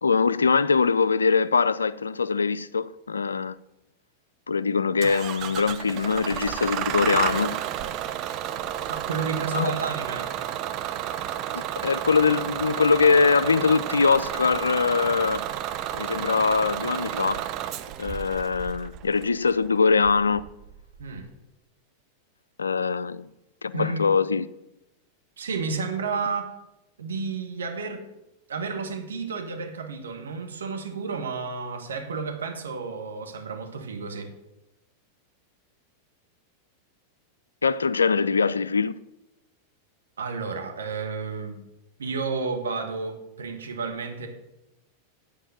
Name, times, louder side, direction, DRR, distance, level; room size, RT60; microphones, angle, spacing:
voice 1, 0.0-3.6 4.5-7.6 9.5-9.7 11.5-15.5 15.9-17.5 18.0-20.5 22.6-23.3 23.6-24.5 37.6-39.0, left 5 dB, 75° left, 0.3 m, -22 dB
Bus / Engine starting, 5.0-21.2, right 11 dB, 40° right, 0.5 m, -32 dB
voice 2, 8.9-10.3 21.0-21.3 23.7-24.1 25.4-26.5 27.0-28.1 28.5-34.3 40.2-41.6 42.0-44.3, right 4 dB, 70° right, 1.4 m, -31 dB
9.1 x 4.8 x 6.9 m
figure-of-eight pair, 90°, 0 cm